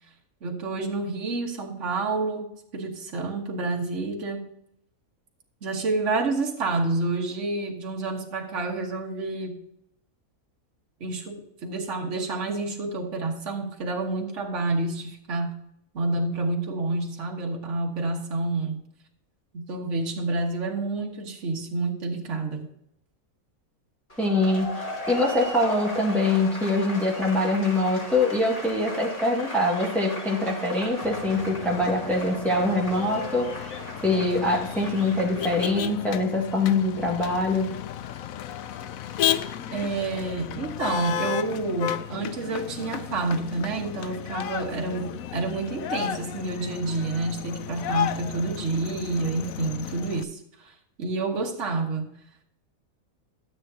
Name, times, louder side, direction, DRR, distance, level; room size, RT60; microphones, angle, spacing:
voice 1, 0.4-2.5 2.7-4.4 5.6-9.6 11.0-15.5 15.9-18.8 19.5-22.7 39.7-52.1, right 3 dB, 60° right, 0 dB, 1.7 m, -29 dB
sound 1, 24.1-35.7, left 1 dB, 35° left, 3.2 m, -37 dB
voice 2, 24.2-33.5 34.0-37.7, left 2 dB, ahead, -3 dB, 1.8 m, -24 dB
Motor vehicle (road), 31.0-50.2, left 10 dB, 80° left, 1.0 m, -33 dB
13.0 x 7.8 x 2.8 m, 0.74 s
omnidirectional pair, 1.5 m